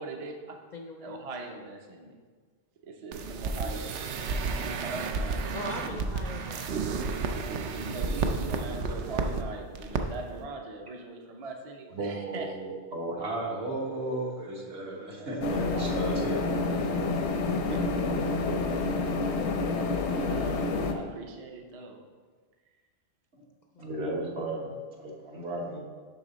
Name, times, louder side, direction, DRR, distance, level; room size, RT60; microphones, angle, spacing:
voice 1, 0.0-0.5 1.0-2.2 2.8-5.5 7.3-12.5 15.0-15.3 15.6-17.2 17.7-18.0 19.9-22.0, right 3 dB, 40° right, 2 dB, 0.6 m, -41 dB
voice 2, 0.7-1.2 5.5-6.7 23.7-24.0, left 2 dB, 55° left, 2 dB, 0.5 m, -40 dB
sound 1, 3.1-9.4 9.7-10.0 10.3-10.4, right 4 dB, 80° right, 0.9 m, -31 dB
voice 3, 11.9-16.5 23.3-23.4 23.8-25.8, right 2 dB, 65° right, -2 dB, 1.5 m, -34 dB
sound 2, 15.4-20.9, left 3 dB, 80° left, 1.0 m, -28 dB
6.8 x 5.8 x 4.0 m, 1.5 s
omnidirectional pair, 1.2 m